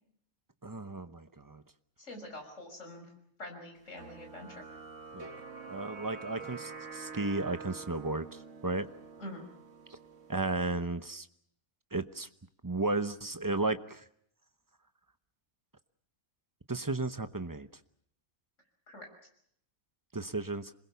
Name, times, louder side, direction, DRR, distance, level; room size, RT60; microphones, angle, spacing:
voice 1, 0.6-1.6 5.1-5.3 5.7-8.9 10.3-11.3 11.9-12.3 12.6-14.0 16.7-17.7 20.1-20.7, right 2 dB, 20° right, 10 dB, 0.7 m, -34 dB
voice 2, 2.0-3.1 3.4-4.6 9.2-9.4 18.9-19.1, left 1 dB, 55° left, 3 dB, 6.3 m, -45 dB
sound 1, 4.0-10.8, right 4 dB, 55° right, 2.1 m, -47 dB
27.0 x 21.0 x 7.0 m, 0.70 s
omnidirectional pair, 1.5 m